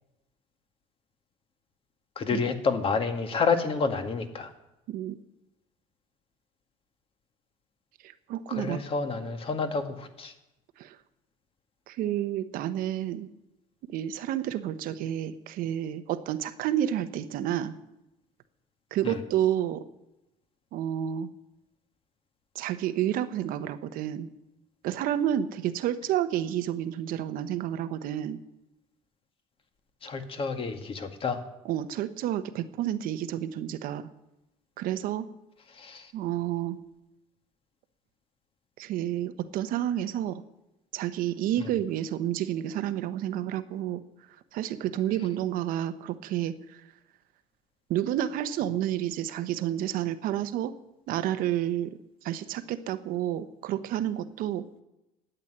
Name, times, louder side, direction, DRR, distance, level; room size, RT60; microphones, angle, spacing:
voice 1, 2.2-4.5 8.5-10.3 19.0-19.2 30.0-31.4 35.8-36.1, left 4 dB, 35° left, 7 dB, 1.9 m, -29 dB
voice 2, 8.0-8.8 10.8-11.0 11.9-13.3 13.9-17.8 18.9-19.8 20.7-21.3 22.5-24.3 24.8-28.4 31.6-34.1 34.8-35.3 36.1-36.8 38.8-40.4 40.9-44.0 44.5-46.8 47.9-50.7 51.1-54.6, right 11 dB, 60° right, 11 dB, 1.0 m, -30 dB
12.0 x 8.3 x 10.0 m, 0.93 s
cardioid pair, 115°, 16 cm